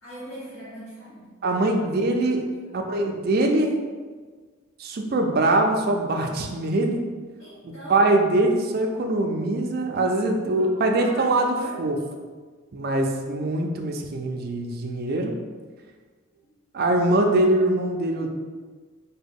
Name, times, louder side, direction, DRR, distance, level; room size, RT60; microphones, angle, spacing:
voice 1, 0.0-1.3 1.8-1.9 2.2-3.0 7.4-8.1 10.5-11.8 16.3-16.6, right 1 dB, 70° left, -13 dB, 1.3 m, -42 dB
voice 2, 1.4-2.4 2.7-3.8 4.8-7.0 7.6-12.0 12.7-15.3 16.7-18.3, right 2 dB, 45° right, 3 dB, 0.4 m, -23 dB
3.6 x 2.2 x 3.5 m, 1.5 s
head